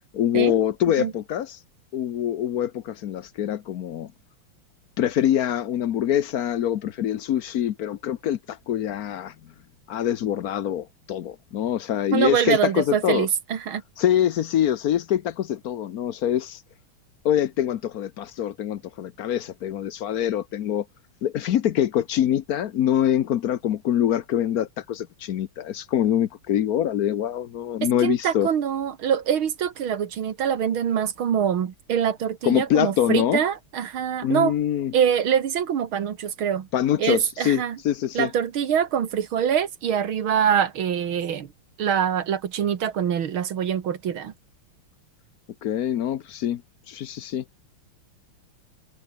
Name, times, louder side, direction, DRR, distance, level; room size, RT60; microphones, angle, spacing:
voice 1, 0.1-1.6 1.9-4.1 5.0-9.3 9.9-13.3 14.0-16.6 17.2-20.8 21.2-28.5 32.4-33.4 34.2-34.9 36.7-38.3 45.6-46.6 46.9-47.4, left 10 dB, 65° left, 0.9 m, -24 dB
voice 2, 12.1-13.8 28.0-34.5 34.9-36.7 37.0-37.8 38.1-41.5 41.8-44.3, right 8 dB, 70° right, 2.3 m, -24 dB
omnidirectional pair, 2.4 m